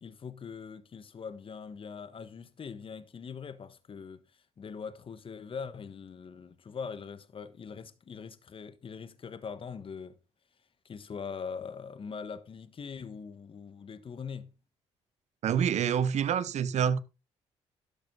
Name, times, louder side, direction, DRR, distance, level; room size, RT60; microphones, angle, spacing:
voice 1, 0.0-10.1 10.8-14.5, left 6 dB, 45° left, 1.4 m, -42 dB
voice 2, 15.4-17.0, right 8 dB, 65° right, 1.1 m, -27 dB
12.5 x 7.1 x 3.9 m
supercardioid pair, 60°, 13 cm